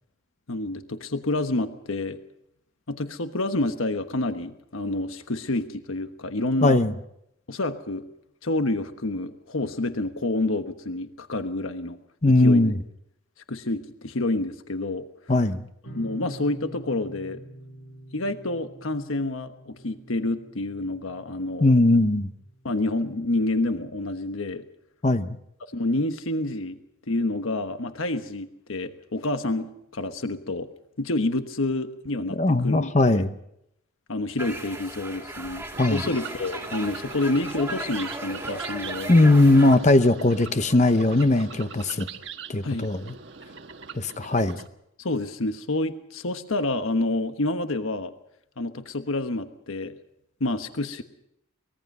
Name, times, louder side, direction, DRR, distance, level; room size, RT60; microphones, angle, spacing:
voice 1, 0.5-2.2 2.9-6.8 7.5-8.0 8.4-12.0 12.4-12.7 13.5-15.0 15.9-17.4 18.1-21.8 22.6-24.6 25.7-26.8 27.1-30.7 31.0-33.2 34.1-35.6 35.9-39.3 42.6-42.9 45.0-48.1 48.6-50.0 50.4-51.0, left 2 dB, 80° left, 8 dB, 1.2 m, -28 dB
voice 2, 6.6-6.9 12.2-12.7 15.3-15.6 21.6-22.3 25.0-25.4 32.4-33.3 35.8-36.0 39.1-42.1 42.5-43.1 44.0-44.6, left 2 dB, 35° left, 10 dB, 0.8 m, -19 dB
sound 1, 15.8-23.0, right 1 dB, 60° left, 3.0 m, -46 dB
sound 2, 34.4-39.8, right 2 dB, 10° right, 2.2 m, -36 dB
sound 3, 35.7-44.7, right 5 dB, 60° right, 1.4 m, -41 dB
24.0 x 21.0 x 5.5 m, 0.78 s
head